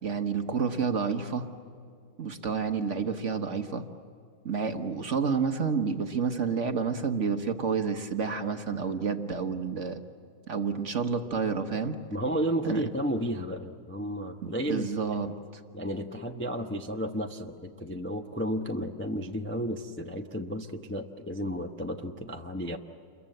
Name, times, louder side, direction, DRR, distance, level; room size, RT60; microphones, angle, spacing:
voice 1, 0.0-1.5 2.2-3.9 4.4-10.0 10.5-12.0 12.6-12.8 14.4-15.3, right 5 dB, 45° right, 6 dB, 1.3 m, -29 dB
voice 2, 12.1-14.9 15.2-15.4 15.7-22.8, equal, 10° left, 3 dB, 0.7 m, -32 dB
28.5 x 22.5 x 7.8 m, 2.3 s
omnidirectional pair, 1.9 m